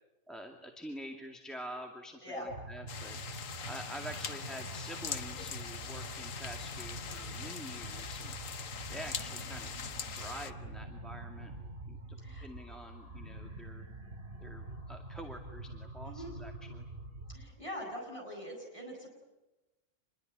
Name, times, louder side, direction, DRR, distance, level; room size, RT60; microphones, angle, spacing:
voice 1, 0.3-3.2 3.6-8.4 8.9-9.8 10.1-11.5 11.9-13.9 14.4-16.9, equal, ahead, 2 dB, 2.2 m, -47 dB
sound 1, 2.5-17.4, right 2 dB, 55° right, 2.8 m, -45 dB
sound 2, 2.9-10.5, left 7 dB, 85° left, 1.5 m, -42 dB
voice 2, 17.3-19.1, equal, 25° left, 0 dB, 8.0 m, -43 dB
27.5 x 22.0 x 9.5 m, 1.0 s
omnidirectional pair, 1.3 m